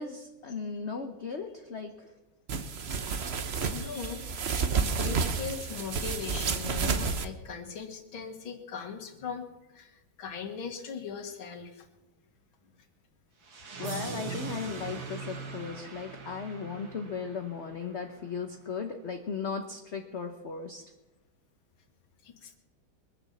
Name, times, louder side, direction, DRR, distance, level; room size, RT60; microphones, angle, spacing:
voice 1, 0.0-2.1 13.8-20.8, left 5 dB, 45° left, 5 dB, 1.0 m, -37 dB
sound 1, 2.5-7.3, right 5 dB, 50° right, 0.8 m, -30 dB
voice 2, 3.7-4.3 4.6-11.9 22.2-22.6, left 6 dB, 70° left, 5 dB, 2.5 m, -40 dB
sound 2, 13.4-18.4, right 5 dB, 65° right, 2.7 m, -41 dB
23.0 x 7.8 x 7.1 m, 1.1 s
omnidirectional pair, 2.3 m